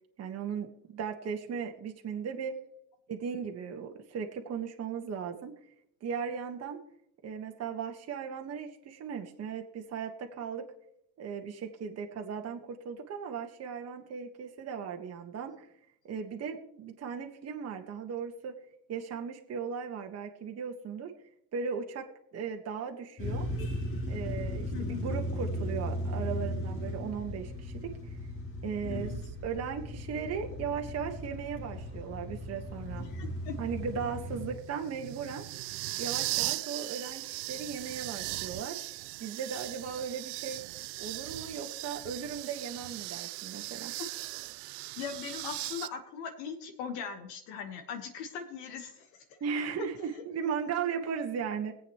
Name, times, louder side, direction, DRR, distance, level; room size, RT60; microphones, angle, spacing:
voice 1, 0.2-2.6 3.1-5.5 6.0-6.8 7.2-10.7 11.2-15.7 16.0-18.6 18.9-21.1 21.5-22.1 22.3-23.5 24.1-27.9 28.6-29.1 29.4-33.0 33.6-35.4 36.0-38.8 39.2-40.6 41.0-43.9 49.4-51.7, right 6 dB, 30° right, 3 dB, 1.6 m, -37 dB
sound 1, 23.2-34.5, left 1 dB, 25° left, 2.2 m, -36 dB
voice 2, 24.7-25.1 28.8-29.2 33.0-33.5 45.0-49.1, left 6 dB, 55° left, 5 dB, 1.6 m, -40 dB
sound 2, 32.7-45.9, right 21 dB, 65° right, 0.6 m, -39 dB
22.0 x 8.4 x 3.1 m, 0.76 s
supercardioid pair, 110°, 49 cm